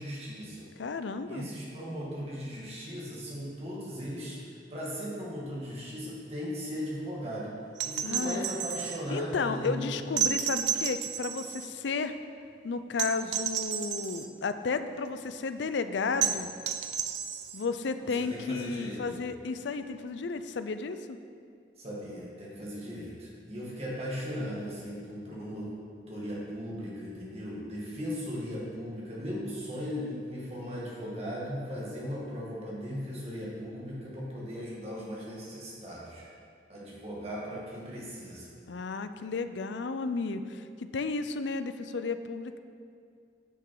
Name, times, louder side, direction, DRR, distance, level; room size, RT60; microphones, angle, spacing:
voice 1, 0.0-0.7 1.2-4.4 4.7-7.6 7.8-10.0 18.0-19.2 21.8-25.7 26.1-36.2 36.7-38.6, equal, 35° right, -5 dB, 1.9 m, -37 dB
voice 2, 0.8-1.5 8.0-8.5 9.1-12.1 12.6-16.5 17.5-21.2 38.7-42.6, left 4 dB, 70° left, 10 dB, 0.4 m, -33 dB
sound 1, 7.8-9.0 10.2-11.7 13.0-14.3 16.2-17.7 19.5-19.6, right 8 dB, 70° right, 0.5 m, -32 dB
9.8 x 6.1 x 4.7 m, 2.3 s
head